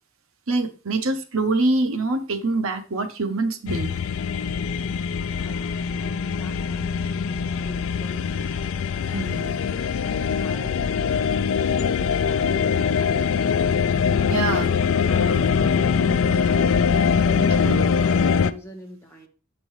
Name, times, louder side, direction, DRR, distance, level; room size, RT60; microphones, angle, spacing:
voice 1, 0.5-3.9 9.1-9.6 14.3-14.7 17.6-18.1, right 2 dB, 85° right, 0.9 m, -25 dB
sound 1, 3.7-18.5, left 6 dB, 70° left, 0.4 m, -22 dB
voice 2, 5.3-8.7 9.1-13.7 14.1-16.9 17.2-19.3, equal, 10° left, 1.1 m, -43 dB
7.3 x 5.2 x 3.1 m
head